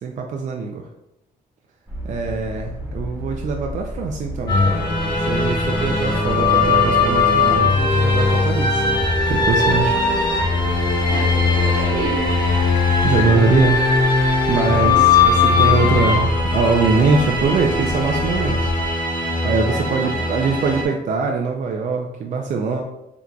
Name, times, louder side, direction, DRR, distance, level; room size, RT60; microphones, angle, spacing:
voice 1, 0.0-0.9 2.0-4.8 5.3-8.8 9.3-10.0 13.0-18.7 19.4-22.8, right 4 dB, 50° right, 2 dB, 0.4 m, -22 dB
sound 1, 1.9-18.9, equal, 10° right, 1.1 m, -32 dB
sound 2, 4.5-20.8, left 3 dB, 25° left, 1.0 m, -19 dB
voice 2, 11.1-12.3 14.7-15.1 19.7-20.4, right 3 dB, 85° right, 1 dB, 0.8 m, -31 dB
3.7 x 2.8 x 2.2 m, 0.87 s
cardioid pair, 90°, 17 cm